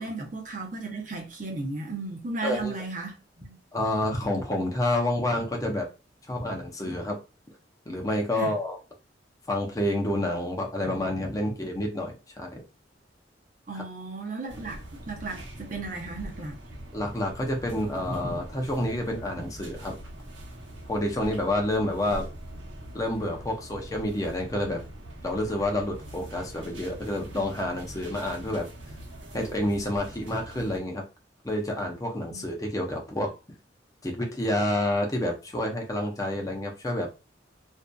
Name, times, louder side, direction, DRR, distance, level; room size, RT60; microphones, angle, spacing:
voice 1, 0.0-3.6 8.4-8.5 13.7-14.8 15.1-16.6 32.3-32.4, right 3 dB, 45° right, 0.7 m, -35 dB
voice 2, 2.4-2.7 3.7-5.9 6.3-7.2 7.9-8.8 9.5-12.6 13.7-13.8 16.9-20.0 20.9-22.3 22.9-24.8 25.2-28.7 29.3-31.0 31.4-33.3 34.0-37.1, left 1 dB, 20° left, 0.5 m, -29 dB
sound 1, 14.5-30.8, right 1 dB, 90° right, 0.8 m, -43 dB
2.6 x 2.3 x 2.2 m
head